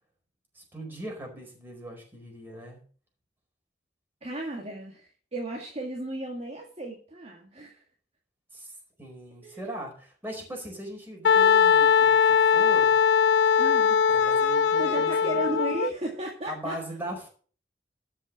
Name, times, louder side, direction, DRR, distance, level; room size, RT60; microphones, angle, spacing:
voice 1, 0.5-2.8 8.5-12.9 14.1-15.5 16.5-17.3, right 1 dB, 10° right, 0 dB, 4.6 m, -39 dB
voice 2, 4.2-7.8 9.4-9.6 13.6-14.0 14.8-16.8, right 1 dB, 35° right, -1 dB, 2.0 m, -34 dB
Wind instrument woodwind instrument, 11.2-15.9, left 7 dB, 85° left, 0.6 m, -20 dB
13.0 x 6.1 x 6.2 m, 0.41 s
head